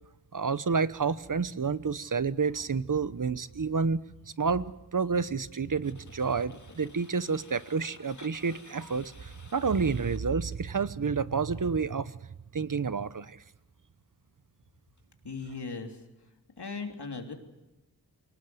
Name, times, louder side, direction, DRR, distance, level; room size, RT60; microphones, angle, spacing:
voice 1, 0.3-4.0 4.4-12.2 12.5-13.4, right 5 dB, 55° right, 15 dB, 1.0 m, -29 dB
sound 1, 5.8-10.4 15.0-15.1, left 3 dB, 50° left, 1.8 m, -53 dB
voice 2, 15.2-16.0 16.6-17.3, left 4 dB, 80° left, 3 dB, 3.3 m, -37 dB
23.5 x 19.0 x 7.9 m, 0.99 s
wide cardioid pair, 55°, 39 cm